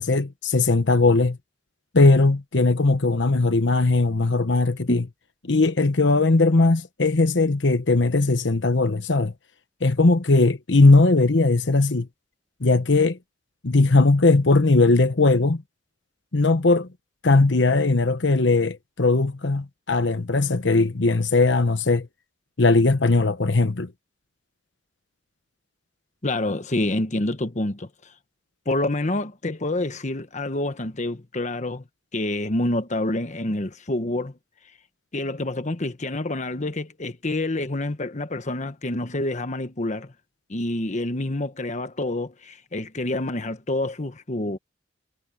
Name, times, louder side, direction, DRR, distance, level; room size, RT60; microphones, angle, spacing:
voice 1, 0.0-1.4 1.9-5.0 5.4-9.3 9.8-12.1 12.6-13.2 13.6-15.6 16.3-16.9 17.2-22.1 22.6-23.9, left 3 dB, 70° left, 1.1 m, -19 dB
voice 2, 26.2-27.9 28.7-31.8 32.1-34.3 35.1-40.1 40.5-44.6, left 1 dB, 40° left, 1.3 m, -27 dB
head